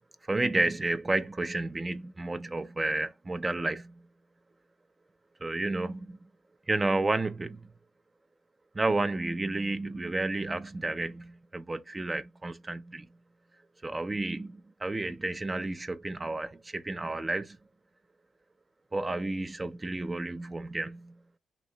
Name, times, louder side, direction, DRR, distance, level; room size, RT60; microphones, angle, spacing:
voice 1, 0.3-3.9 5.4-6.3 6.7-7.7 8.7-13.1 13.8-17.6 18.9-21.1, right 2 dB, 25° right, 0.6 m, -31 dB
3.5 x 3.1 x 3.9 m
cardioid pair, 70°, 0 cm